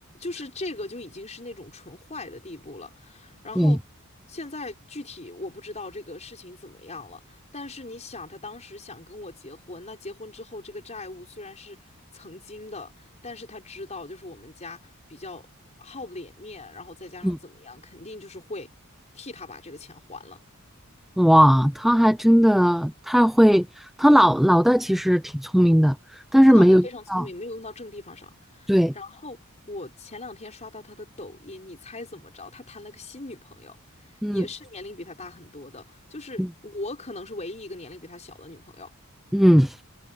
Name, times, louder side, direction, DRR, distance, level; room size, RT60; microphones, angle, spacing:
voice 1, 0.1-3.8 4.3-11.8 12.1-15.5 15.8-18.7 19.1-20.4 26.5-33.8 34.0-38.9, left 2 dB, 30° left, 5.2 m, -40 dB
voice 2, 21.2-27.2 28.7-28.9 34.2-34.4 36.4-36.5 39.3-39.8, equal, ahead, 0.5 m, -18 dB
head